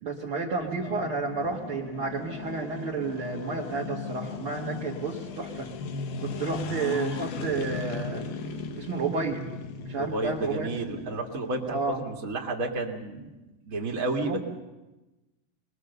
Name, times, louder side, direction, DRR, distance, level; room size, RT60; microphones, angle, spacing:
voice 1, 0.0-5.7 6.2-8.2 8.8-9.5 9.8-11.0 11.7-12.0 14.2-14.4, right 4 dB, 75° right, -3 dB, 1.2 m, -31 dB
sound 1, 0.6-11.9, left 4 dB, 65° left, 2.7 m, -37 dB
voice 2, 6.2-6.6 9.9-13.4 13.6-14.4, right 2 dB, 40° right, 1 dB, 1.2 m, -32 dB
24.5 x 20.5 x 6.8 m, 1.1 s
omnidirectional pair, 5.0 m